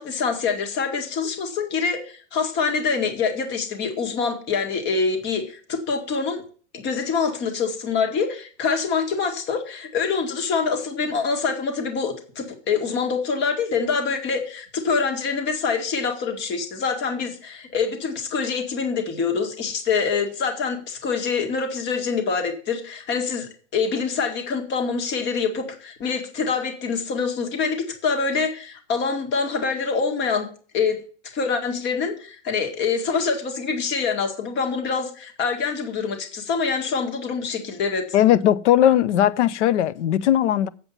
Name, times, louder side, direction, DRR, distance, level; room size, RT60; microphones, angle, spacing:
voice 1, 0.0-6.4 6.7-30.5 30.7-31.0 31.3-38.1, left 5 dB, 30° left, 1.9 m, -25 dB
voice 2, 38.1-40.7, left 11 dB, 70° left, 0.8 m, -18 dB
8.1 x 7.8 x 5.6 m
hypercardioid pair, 145°, 37 cm